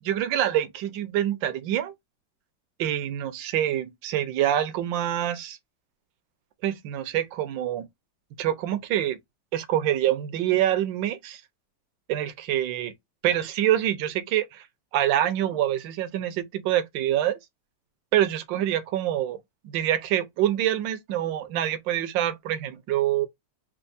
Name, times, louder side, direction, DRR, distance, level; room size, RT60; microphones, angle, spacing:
voice 1, 0.0-1.9 2.8-5.6 6.6-7.9 8.4-9.2 9.5-11.4 12.1-12.9 13.2-14.6 14.9-17.4 18.1-19.4 19.6-23.3, right 12 dB, 70° right, 1.3 m, -26 dB
4.4 x 2.3 x 2.6 m
omnidirectional pair, 2.2 m